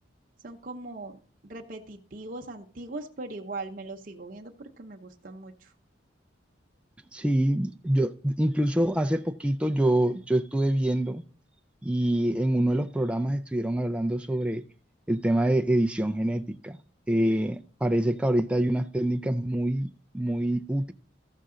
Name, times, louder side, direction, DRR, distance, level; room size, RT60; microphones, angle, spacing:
voice 1, 0.4-5.7, right 2 dB, 45° right, 0.8 m, -40 dB
voice 2, 7.1-11.2 11.8-14.6 15.1-16.8 17.1-19.9 20.1-20.9, right 1 dB, 5° right, 0.3 m, -25 dB
14.0 x 6.5 x 3.7 m
head